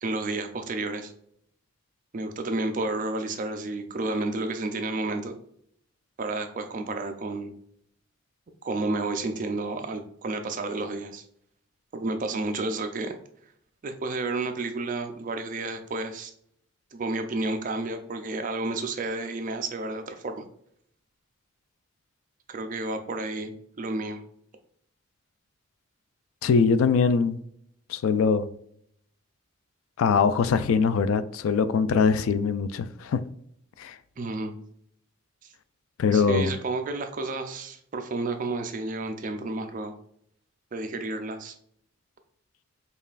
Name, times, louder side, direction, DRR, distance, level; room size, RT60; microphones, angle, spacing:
voice 1, 0.0-1.1 2.1-5.4 6.2-7.5 8.6-11.2 11.9-13.2 13.8-16.3 16.9-20.4 22.5-23.5 23.8-24.2 34.2-34.5 35.4-35.5 36.1-39.9 40.7-41.5, right 2 dB, 40° right, 0.4 m, -31 dB
voice 2, 26.4-27.4 27.9-28.5 30.0-33.2 33.8-33.9 36.0-36.5, left 5 dB, 75° left, 0.3 m, -22 dB
5.2 x 2.4 x 2.4 m
head